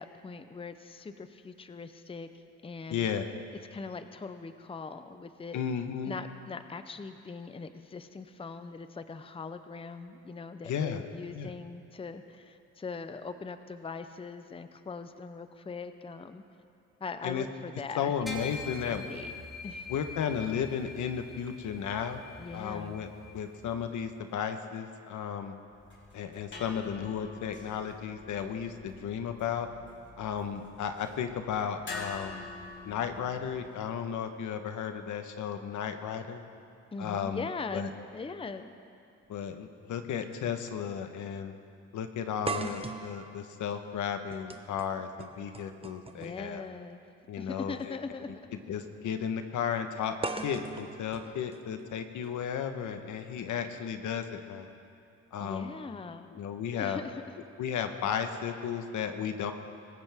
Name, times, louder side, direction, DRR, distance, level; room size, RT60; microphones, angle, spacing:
voice 1, 0.0-3.1 3.7-5.6 6.0-16.4 17.0-18.1 18.5-19.3 19.6-19.9 22.4-23.0 36.9-38.7 46.1-47.0 47.4-48.3 55.4-56.4 56.7-57.2, left 4 dB, 20° left, 10 dB, 0.7 m, -41 dB
voice 2, 2.9-3.3 5.5-6.1 10.6-11.0 11.3-11.5 17.2-17.5 18.0-19.0 19.9-22.2 22.5-23.1 23.3-25.6 26.1-29.7 30.2-32.5 32.8-36.4 37.0-37.9 39.3-41.5 41.9-46.7 47.3-48.0 48.7-50.2 50.4-54.7 55.3-55.7 56.3-57.0 57.6-59.5, left 8 dB, 75° left, 7 dB, 1.2 m, -34 dB
sound 1, 18.3-23.9, left 3 dB, ahead, 2.9 m, -44 dB
sound 2, 25.7-33.7, left 3 dB, 40° left, 3.7 m, -47 dB
sound 3, 39.2-39.3 40.5-40.6 41.0-41.1 42.5-46.5 47.7-47.8 50.2-52.2, right 3 dB, 20° right, 1.0 m, -40 dB
24.5 x 15.0 x 3.6 m, 2.6 s
cardioid pair, 90°, 30 cm